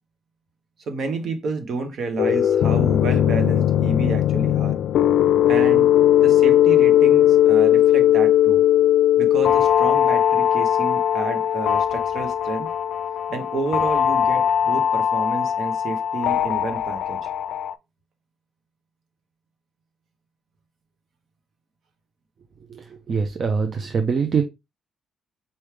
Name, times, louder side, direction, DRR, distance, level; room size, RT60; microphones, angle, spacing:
voice 1, 0.8-4.8 5.5-5.9 6.2-8.6 9.2-12.7 13.3-17.3, right 3 dB, 65° right, 1.2 m, -30 dB
sound 1, 2.2-17.7, left 11 dB, 75° left, 0.4 m, -19 dB
voice 2, 22.7-24.4, right 5 dB, 50° right, 0.6 m, -23 dB
4.4 x 3.3 x 3.3 m
cardioid pair, 90°, 0 cm